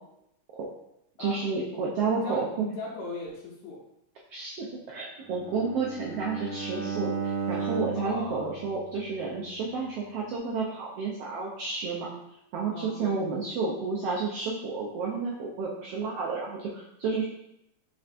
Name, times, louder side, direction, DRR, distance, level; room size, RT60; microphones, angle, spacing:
voice 1, 1.2-2.7 4.3-12.1 12.5-17.2, right 4 dB, 80° right, -4 dB, 1.3 m, -31 dB
voice 2, 2.1-3.8 8.0-8.5 12.7-13.2, left 3 dB, 90° left, -6 dB, 2.2 m, -38 dB
Bowed string instrument, 5.2-9.4, right 5 dB, 50° right, 1.6 m, -35 dB
4.5 x 4.3 x 2.5 m, 0.80 s
omnidirectional pair, 3.4 m